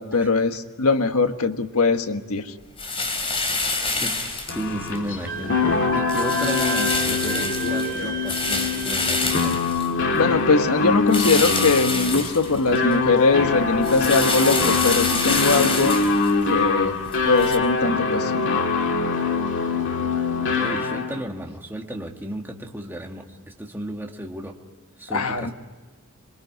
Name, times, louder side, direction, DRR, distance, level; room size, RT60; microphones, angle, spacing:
voice 1, 0.0-2.5 10.1-16.0 16.5-17.0 17.2-18.7 25.1-25.5, left 3 dB, 85° left, 7 dB, 1.5 m, -21 dB
sound 1, 2.8-5.0 5.4-5.7 6.1-10.4 11.1-12.9 13.3-17.6, left 3 dB, 25° left, 3.3 m, -27 dB
voice 2, 4.0-9.8 20.4-24.6 25.0-25.5, right 1 dB, 10° right, 1 dB, 1.9 m, -34 dB
sound 2, 4.5-21.2, left 4 dB, 60° left, 2.3 m, -24 dB
Wind instrument woodwind instrument, 5.3-9.2, right 4 dB, 50° right, 3.5 m, -32 dB
26.5 x 23.0 x 9.4 m, 1.3 s
head